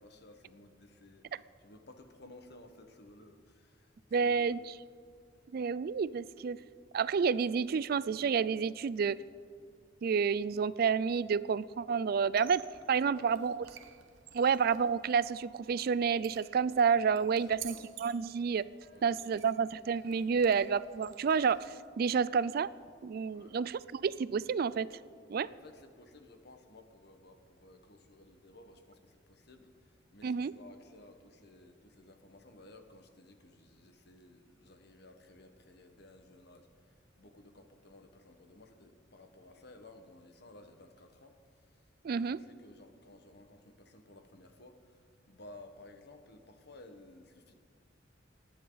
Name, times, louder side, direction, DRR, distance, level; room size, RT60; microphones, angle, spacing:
voice 1, 0.0-1.2 1.6-3.9 4.2-4.6 13.0-13.6 17.3-17.9 18.9-19.4 23.3-23.6 25.6-41.4 42.1-47.5, left 2 dB, 60° left, 6 dB, 1.4 m, -56 dB
voice 2, 4.1-4.7 5.5-6.6 6.9-9.2 10.0-12.6 12.9-13.6 14.3-18.7 19.0-22.7 23.0-25.0 25.3-25.5 30.2-30.5 42.0-42.4, right 6 dB, 50° right, 18 dB, 0.3 m, -30 dB
Squeak, 12.3-21.9, right 10 dB, 85° right, 0.9 m, -52 dB
27.5 x 10.0 x 4.0 m, 2.1 s
head